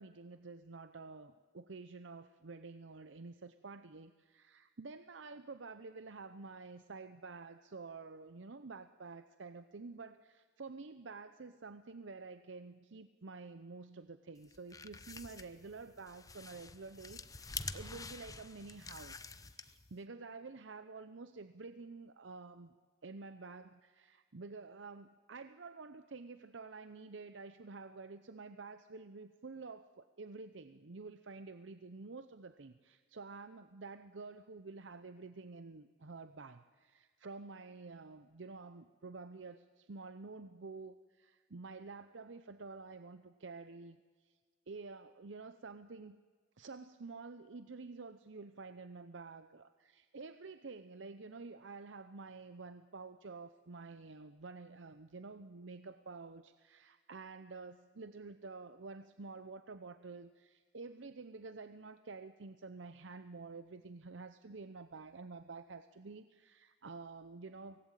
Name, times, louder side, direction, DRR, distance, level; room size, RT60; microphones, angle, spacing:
voice 1, 0.0-22.8 23.0-44.0 44.2-44.4 44.7-46.2 46.6-67.8, right 4 dB, 75° right, 11 dB, 0.7 m, -49 dB
sound 1, 14.4-20.0, left 4 dB, 20° left, 0.8 m, -47 dB
24.0 x 18.5 x 9.0 m, 1.5 s
head